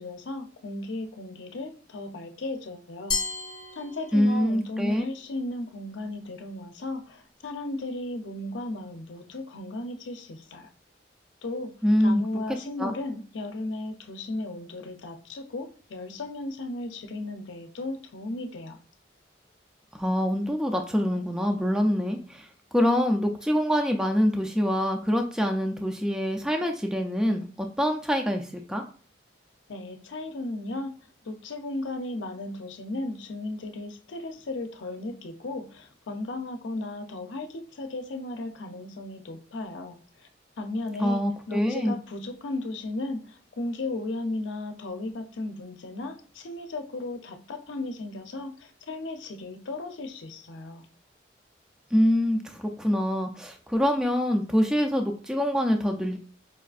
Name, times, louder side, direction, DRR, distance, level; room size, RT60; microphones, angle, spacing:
voice 1, 0.0-3.2 3.8-10.7 11.4-18.8 29.7-30.9 31.3-40.3 40.6-50.9, left 2 dB, 90° left, 0.6 m, -35 dB
Glass, 3.1-4.5, left 4 dB, 20° left, 0.7 m, -32 dB
voice 2, 4.1-5.0 11.8-12.2 12.8-12.9 20.0-22.5 22.7-28.8 41.0-42.0 51.9-56.2, equal, 5° right, 0.3 m, -25 dB
5.2 x 2.4 x 2.4 m
head